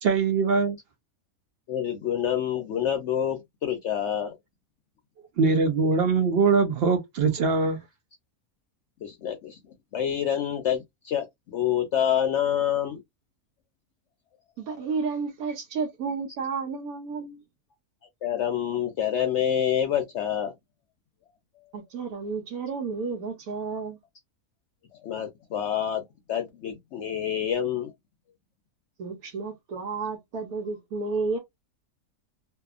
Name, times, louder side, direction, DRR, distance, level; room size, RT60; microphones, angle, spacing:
voice 1, 0.0-0.8 5.4-7.8, right 4 dB, 65° right, 0.6 m, -22 dB
voice 2, 1.7-4.4 9.0-9.6 9.9-13.0 18.2-20.5 24.9-26.0 26.3-27.9, left 9 dB, 65° left, 0.7 m, -27 dB
voice 3, 14.6-17.4 21.7-24.0 29.0-31.4, right 4 dB, 85° right, 1.2 m, -31 dB
2.7 x 2.3 x 2.3 m
omnidirectional pair, 1.6 m